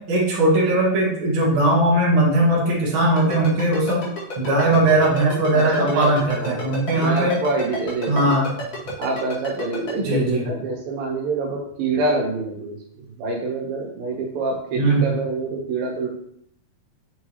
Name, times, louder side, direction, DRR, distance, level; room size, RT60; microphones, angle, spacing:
voice 1, 0.1-4.0 4.4-7.3 8.1-8.5 10.0-10.4 14.8-15.1, right 1 dB, 45° right, -5 dB, 2.1 m, -19 dB
Ringtone, 3.2-9.9, left 2 dB, 45° left, 3.2 m, -31 dB
voice 2, 5.5-6.1 6.4-8.3 9.0-12.8 13.2-16.1, right 3 dB, 80° right, 0 dB, 3.2 m, -26 dB
6.8 x 6.3 x 3.2 m, 0.69 s
omnidirectional pair, 4.2 m